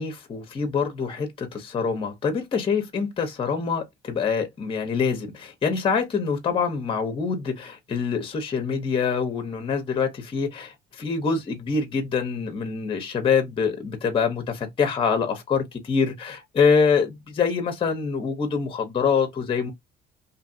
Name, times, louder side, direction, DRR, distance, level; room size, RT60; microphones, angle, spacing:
voice 1, 0.0-19.7, left 5 dB, 30° left, 0.7 m, -25 dB
2.7 x 2.5 x 2.5 m
cardioid pair, 110°, 17 cm